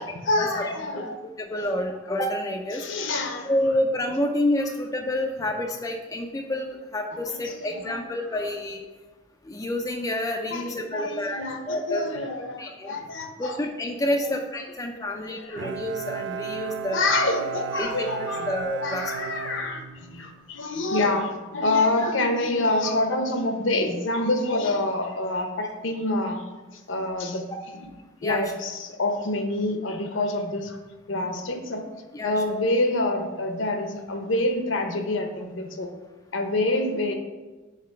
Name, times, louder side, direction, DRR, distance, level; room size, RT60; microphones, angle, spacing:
voice 1, 0.0-1.1 1.6-1.7 2.7-3.5 7.3-7.9 10.5-13.6 14.1-14.4 15.3-15.6 16.9-18.5 18.8-26.4 26.7-27.4 28.2-30.8 31.1-31.8 32.2-35.9 36.3-37.1, left 2 dB, 65° left, 4 dB, 0.8 m, -27 dB
voice 2, 1.0-2.8 3.4-8.9 9.5-12.1 12.6-12.9 13.4-17.0 17.8-19.1 28.2-28.4 32.1-32.3, left 1 dB, 15° left, 2 dB, 0.3 m, -28 dB
Bowed string instrument, 15.6-20.4, right 7 dB, 60° right, 0.3 m, -34 dB
4.9 x 4.1 x 5.6 m, 1.2 s
head